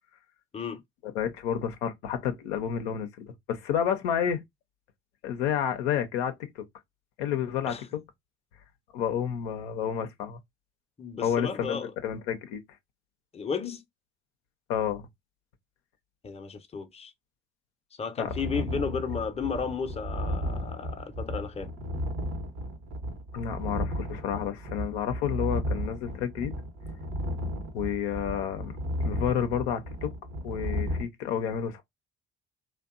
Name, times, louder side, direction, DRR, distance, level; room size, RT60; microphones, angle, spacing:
voice 1, 1.1-4.4 5.2-6.6 7.2-7.8 8.9-10.4 11.2-12.6 14.7-15.1 18.2-18.3 23.3-26.5 27.7-28.8 29.0-30.1 30.4-31.8, left 9 dB, 85° left, 0.5 m, -30 dB
voice 2, 11.0-11.9 13.3-13.8 16.2-17.1 18.0-21.7, left 6 dB, 20° left, 0.5 m, -33 dB
sound 1, 18.3-31.0, equal, 75° right, 0.9 m, -34 dB
2.7 x 2.2 x 2.3 m
hypercardioid pair, 50°, 33 cm